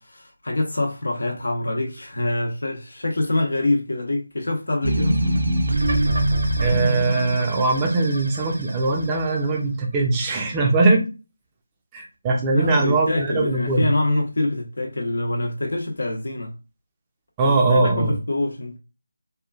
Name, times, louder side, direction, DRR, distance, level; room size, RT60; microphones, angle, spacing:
voice 1, 0.0-5.4 12.5-16.5 17.4-18.8, left 2 dB, 70° left, 0.9 m, -25 dB
sound 1, 4.8-9.2, right 1 dB, 70° right, 0.6 m, -23 dB
voice 2, 6.6-11.1 11.9-13.9 17.4-18.1, right 3 dB, 15° right, 0.5 m, -21 dB
3.0 x 2.3 x 2.3 m
figure-of-eight pair, 165°, 0 cm